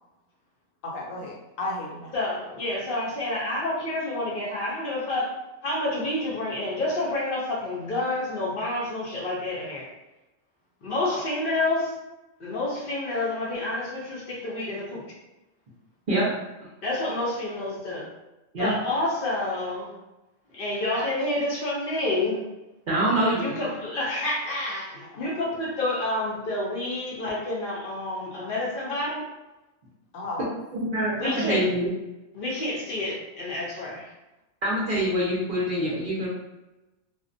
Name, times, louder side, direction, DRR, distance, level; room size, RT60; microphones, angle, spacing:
voice 1, 0.8-2.1 11.0-11.2 25.1-25.3 30.1-30.5, left 2 dB, 85° left, -3 dB, 1.0 m, -34 dB
voice 2, 2.1-5.3 5.6-9.9 10.8-11.9 12.4-15.0 16.8-18.1 18.6-19.9 20.5-22.4 23.2-29.3 31.1-31.7 32.4-34.1, left 2 dB, 55° left, -5 dB, 0.7 m, -29 dB
voice 3, 22.9-23.5 30.7-31.9 34.6-36.3, right 1 dB, 55° right, -6 dB, 0.6 m, -25 dB
2.5 x 2.1 x 2.5 m, 1.0 s
omnidirectional pair, 1.3 m